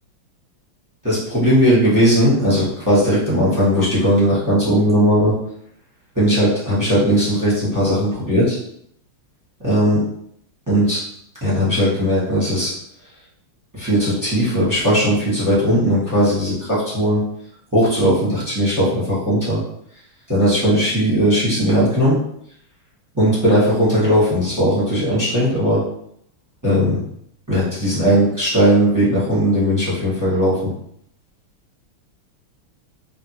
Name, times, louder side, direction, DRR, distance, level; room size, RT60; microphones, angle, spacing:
voice 1, 1.0-5.3 6.2-8.6 9.6-10.0 10.7-11.0 11.4-12.7 13.7-17.2 17.7-19.6 20.3-22.2 23.1-25.8 26.6-27.0 27.5-30.6, equal, 20° right, -9 dB, 0.5 m, -17 dB
3.4 x 2.5 x 2.9 m, 0.71 s
omnidirectional pair, 2.4 m